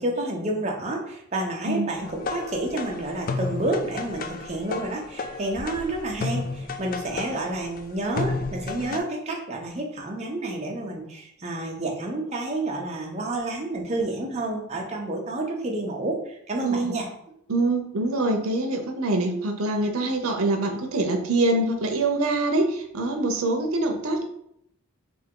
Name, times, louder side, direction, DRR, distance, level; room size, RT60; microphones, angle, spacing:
voice 1, 0.0-17.0, right 2 dB, 30° right, 0 dB, 0.7 m, -29 dB
sound 1, 2.0-9.0, left 4 dB, 40° left, 0.3 m, -32 dB
voice 2, 16.6-16.9 17.5-24.2, right 2 dB, 85° right, 4 dB, 0.7 m, -24 dB
3.5 x 2.8 x 3.7 m, 0.74 s
head